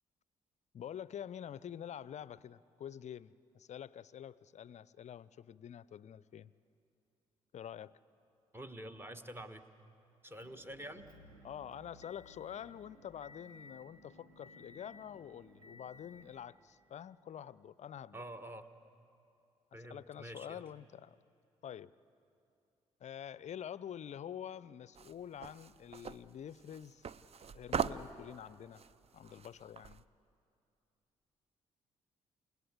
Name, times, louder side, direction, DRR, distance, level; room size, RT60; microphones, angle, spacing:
voice 1, 0.7-6.5 7.5-8.0 11.4-18.2 19.7-21.2 21.6-21.9 23.0-27.1 27.5-28.8 29.1-30.0, left 9 dB, 40° left, 20 dB, 0.5 m, -47 dB
voice 2, 8.5-9.6 10.2-11.1 18.1-18.7 19.7-20.6, right 1 dB, 15° right, 9 dB, 1.3 m, -47 dB
Motor vehicle (road) / Engine, 10.3-16.4, left 1 dB, 90° right, 1.4 m, -58 dB
sound 1, 25.0-30.0, right 6 dB, 35° right, 0.6 m, -41 dB
28.5 x 18.0 x 8.2 m, 2.6 s
figure-of-eight pair, 40°, 17 cm